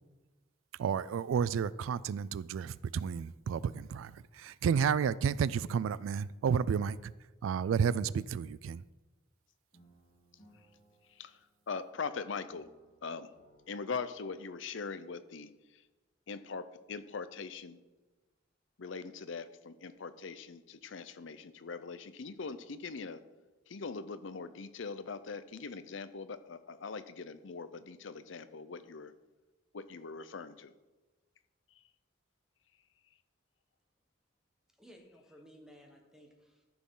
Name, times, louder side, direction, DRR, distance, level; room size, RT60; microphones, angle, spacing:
voice 1, 0.8-7.1 7.4-8.8, right 7 dB, 85° right, 0.3 m, -31 dB
sound 1, 9.7-12.1 12.5-14.7, right 1 dB, 40° left, 3.0 m, -66 dB
voice 2, 11.7-12.7 13.0-13.3 13.7-15.8 16.3-17.8 18.8-23.2 23.7-29.1 29.7-30.7, left 4 dB, 65° left, 0.6 m, -41 dB
voice 3, 34.7-36.6, equal, 5° right, 1.3 m, -57 dB
14.0 x 6.1 x 3.8 m
head